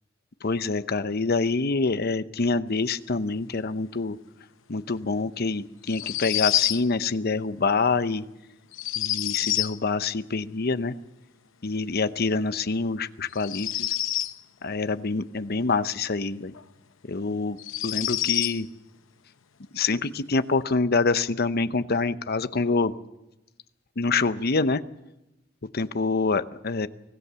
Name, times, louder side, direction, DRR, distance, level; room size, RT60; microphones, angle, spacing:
voice 1, 0.4-4.2 4.7-8.2 9.0-10.9 11.6-13.9 14.6-16.5 17.1-17.6 17.8-18.7 19.7-22.9 24.0-24.8 25.7-26.9, left 4 dB, 55° left, 12 dB, 0.8 m, -26 dB
sound 1, 5.9-6.8 8.7-9.8 13.3-14.4 16.5-16.6 17.6-18.6, left 13 dB, 90° left, 0.8 m, -27 dB
24.5 x 17.0 x 6.9 m, 0.94 s
head